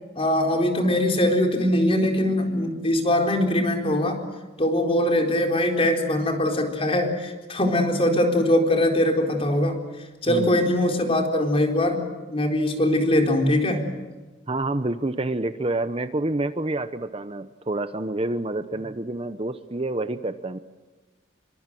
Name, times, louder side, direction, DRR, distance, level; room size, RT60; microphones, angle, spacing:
voice 1, 0.2-4.3 4.6-9.8 10.2-13.9, left 1 dB, 30° left, 3 dB, 4.2 m, -22 dB
voice 2, 10.3-10.7 14.5-20.6, right 2 dB, 30° right, 11 dB, 0.9 m, -28 dB
27.0 x 24.0 x 7.7 m, 1.2 s
head